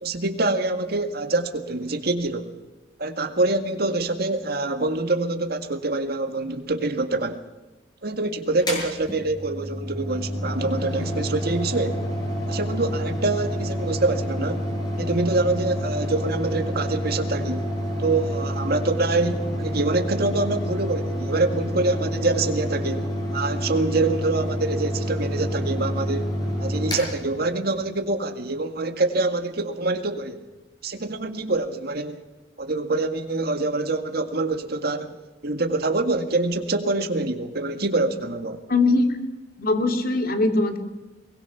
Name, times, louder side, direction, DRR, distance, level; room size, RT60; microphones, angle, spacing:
voice 1, 0.0-2.5 3.0-7.4 8.0-12.0 12.5-14.6 15.0-17.7 18.0-23.1 23.3-26.3 26.6-30.4 30.8-32.2 32.6-35.2 35.4-38.6, right 2 dB, 60° right, 1.9 m, -25 dB
Mechanical fan, 8.6-27.9, equal, 25° left, 7.5 m, -28 dB
voice 2, 38.7-39.1 39.6-40.8, left 2 dB, 55° left, 2.7 m, -21 dB
22.5 x 21.0 x 5.9 m
head